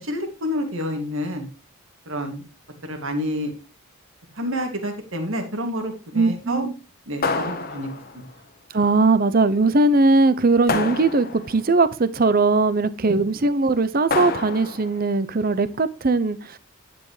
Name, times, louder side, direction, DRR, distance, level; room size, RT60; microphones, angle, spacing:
voice 1, 0.0-1.4 2.1-2.4 2.8-3.5 4.3-6.7 7.1-7.9 8.1-8.2 13.1-13.2, equal, 70° right, 2.4 m, -28 dB
voice 2, 6.1-6.7 8.7-16.6, right 3 dB, 40° right, 0.6 m, -20 dB
sound 1, 7.2-8.3 10.7-11.7 14.1-15.0, left 3 dB, 45° left, 1.1 m, -27 dB
10.5 x 8.7 x 3.2 m
head